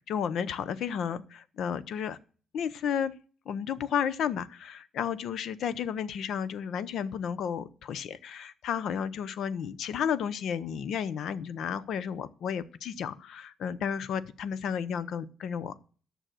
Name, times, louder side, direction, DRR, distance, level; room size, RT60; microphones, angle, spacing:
voice 1, 0.0-2.2 2.5-3.1 3.5-15.8, left 8 dB, 75° left, 16 dB, 0.6 m, -32 dB
9.1 x 6.4 x 7.7 m, 0.41 s
cardioid pair, 125°, 0 cm